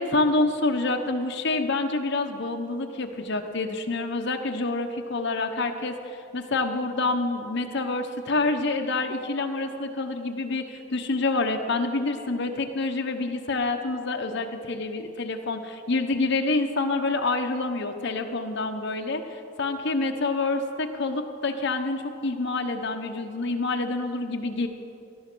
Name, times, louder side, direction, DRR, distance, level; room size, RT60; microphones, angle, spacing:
voice 1, 0.0-24.7, left 3 dB, 60° left, 4 dB, 1.0 m, -27 dB
18.5 x 12.5 x 6.2 m, 2.6 s
head